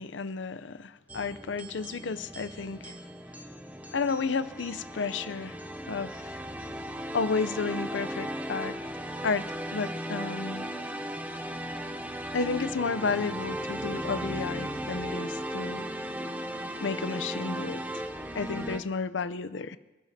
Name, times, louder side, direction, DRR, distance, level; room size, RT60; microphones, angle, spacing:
voice 1, 0.0-3.0 3.9-5.6 5.9-6.4 7.1-8.7 9.2-10.7 12.3-15.9 16.8-18.0 18.3-19.8, left 4 dB, 85° left, 15 dB, 0.6 m, -32 dB
sound 1, 1.1-18.8, equal, 10° right, 0.6 m, -36 dB
27.0 x 12.5 x 2.8 m, 1.1 s
head